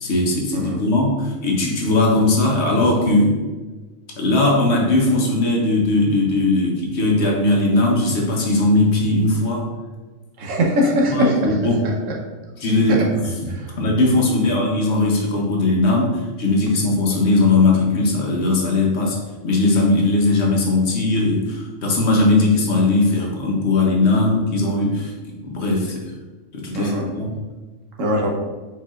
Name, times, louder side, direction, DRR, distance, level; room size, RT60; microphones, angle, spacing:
voice 1, 0.0-3.4 4.2-9.7 11.1-11.9 12.6-13.3 13.8-19.2 19.4-25.1 25.4-26.0 26.5-27.4, left 2 dB, 60° left, -1 dB, 1.1 m, -19 dB
voice 2, 10.4-11.4 12.0-12.1 13.5-13.7 26.7-27.1 28.0-28.3, equal, 80° right, -1 dB, 1.2 m, -21 dB
4.6 x 4.6 x 2.4 m, 1.3 s
omnidirectional pair, 1.3 m